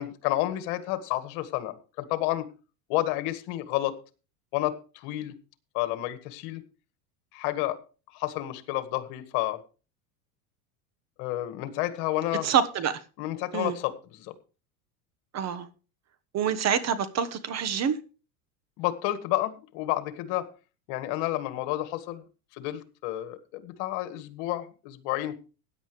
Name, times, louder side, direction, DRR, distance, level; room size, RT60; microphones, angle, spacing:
voice 1, 0.0-2.5 2.9-3.9 4.5-5.3 5.7-6.6 7.3-7.8 8.1-9.6 11.2-12.5 13.2-14.3 18.8-20.5 20.9-22.2 22.5-25.3, left 15 dB, 65° left, 1.9 m, -30 dB
voice 2, 12.4-13.0 13.5-13.8 15.3-15.7 16.3-18.0, right 8 dB, 35° right, 1.4 m, -26 dB
16.0 x 10.0 x 3.3 m
supercardioid pair, 120°, 44 cm